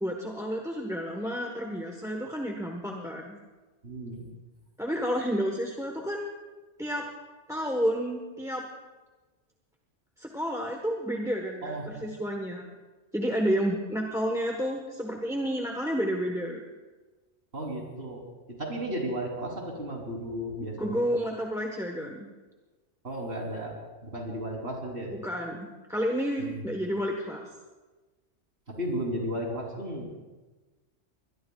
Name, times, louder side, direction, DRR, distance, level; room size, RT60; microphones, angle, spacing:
voice 1, 0.0-3.4 4.8-6.3 6.8-7.1 7.5-8.7 10.2-12.7 13.1-16.6 20.8-22.3 25.2-27.5, equal, 5° right, 2 dB, 1.1 m, -30 dB
voice 2, 3.8-4.3 11.6-12.1 17.5-18.2 18.6-21.0 23.0-23.8 24.0-25.1 26.4-26.6 28.7-30.1, right 1 dB, 55° right, -1 dB, 3.7 m, -34 dB
22.0 x 21.5 x 2.4 m, 1.2 s
omnidirectional pair, 1.3 m